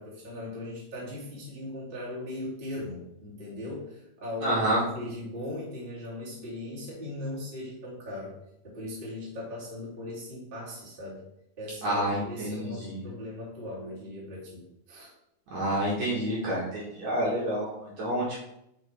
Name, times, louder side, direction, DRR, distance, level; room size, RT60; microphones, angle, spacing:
voice 1, 0.0-4.7 4.9-8.3 8.6-11.2 11.6-15.1, left 1 dB, 15° right, -6 dB, 2.1 m, -39 dB
voice 2, 4.4-4.8 11.8-13.0 15.5-18.4, right 1 dB, 55° right, -6 dB, 2.6 m, -28 dB
8.0 x 5.5 x 3.6 m, 0.79 s
omnidirectional pair, 4.4 m